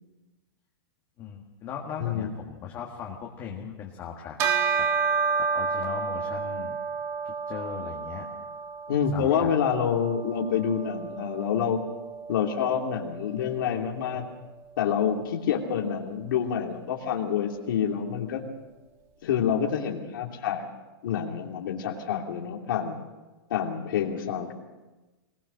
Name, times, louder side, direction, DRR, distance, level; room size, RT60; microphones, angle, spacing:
voice 1, 1.2-4.4 4.8-6.7 7.2-8.3 9.1-9.6, left 7 dB, 20° left, -1 dB, 1.7 m, -39 dB
voice 2, 2.0-2.3 8.9-11.8 12.3-14.3 14.8-18.4 19.2-20.7 21.0-23.0 23.5-24.5, left 8 dB, 60° left, 1 dB, 3.0 m, -27 dB
Bell, 4.4-14.1, right 5 dB, 20° right, 1.6 m, -31 dB
22.0 x 20.5 x 6.5 m, 1.2 s
supercardioid pair, 175°, 12 cm